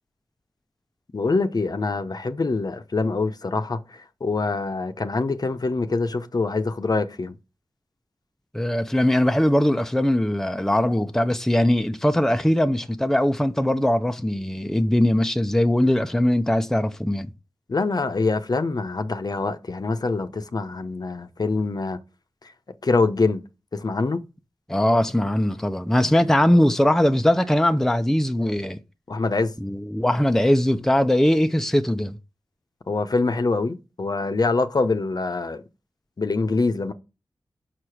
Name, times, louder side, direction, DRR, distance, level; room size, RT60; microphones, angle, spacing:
voice 1, 1.1-3.8 4.2-7.3 17.7-22.0 22.8-23.4 23.7-24.2 29.1-29.5 32.9-35.6 36.2-36.9, left 3 dB, 50° left, 0.8 m, -24 dB
voice 2, 8.5-17.3 24.7-28.8 29.6-32.2, left 1 dB, 5° left, 0.7 m, -20 dB
5.9 x 4.9 x 6.0 m
cardioid pair, 55°, 9 cm